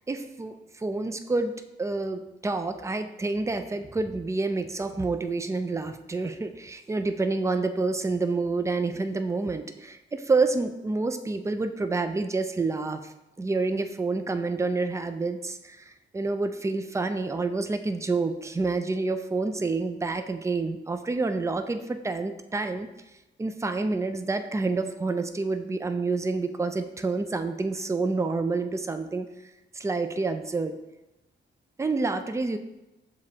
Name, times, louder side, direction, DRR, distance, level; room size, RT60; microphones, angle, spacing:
voice 1, 0.0-22.9 23.4-29.3 29.7-30.8 31.8-32.6, right 3 dB, 15° right, 9 dB, 0.3 m, -28 dB
6.8 x 2.5 x 2.7 m, 0.97 s
cardioid pair, 75°, 20 cm